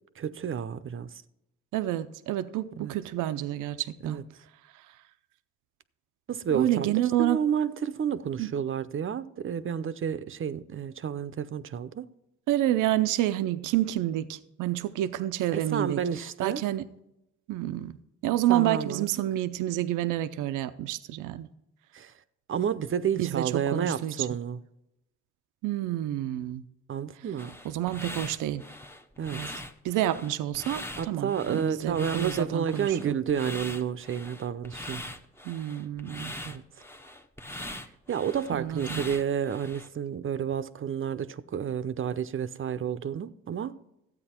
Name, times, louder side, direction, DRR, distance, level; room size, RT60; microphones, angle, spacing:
voice 1, 0.2-1.1 2.8-2.9 4.0-4.2 6.3-12.1 15.5-16.6 18.5-19.1 21.9-22.1 22.5-24.6 26.9-27.6 29.2-29.6 31.0-35.1 36.4-36.6 38.1-43.8, right 8 dB, 45° right, 0.7 m, -30 dB
voice 2, 1.7-4.2 6.5-7.4 8.4-8.5 12.5-16.0 16.4-16.9 17.5-18.0 18.2-21.5 23.2-24.3 25.6-26.6 27.6-28.6 29.3-29.5 29.8-33.2 35.4-36.3 38.5-39.0, right 13 dB, 90° right, 0.6 m, -29 dB
sound 1, 27.4-39.9, left 1 dB, 10° left, 0.9 m, -41 dB
13.0 x 8.7 x 4.4 m
cardioid pair, 90°, 30 cm